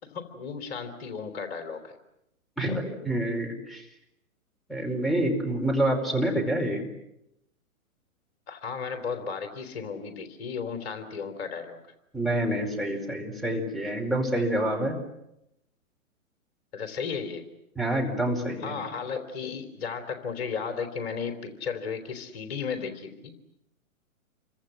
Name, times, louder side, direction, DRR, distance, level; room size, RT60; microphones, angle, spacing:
voice 1, 0.0-2.0 8.5-11.8 16.7-17.5 18.6-23.4, left 6 dB, 45° left, 7 dB, 3.5 m, -34 dB
voice 2, 2.6-3.8 4.7-6.9 12.1-14.9 17.7-18.7, right 1 dB, ahead, 2 dB, 4.6 m, -27 dB
29.0 x 24.5 x 7.6 m, 0.84 s
hypercardioid pair, 125°, 43 cm